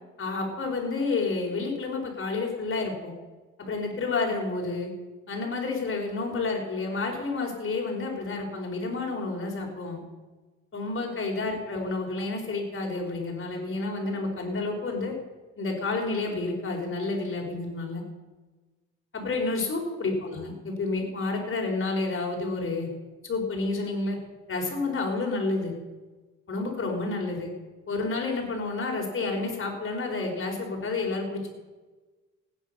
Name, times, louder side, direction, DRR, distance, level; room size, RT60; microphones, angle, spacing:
voice 1, 0.2-3.1 3.6-4.9 5.3-10.0 10.7-15.1 15.6-18.0 19.1-22.9 23.2-24.2 24.5-25.7 26.5-27.5 27.9-31.5, left 3 dB, 40° left, 0 dB, 4.8 m, -30 dB
16.5 x 9.9 x 6.9 m, 1.2 s
cardioid pair, 90°, 30 cm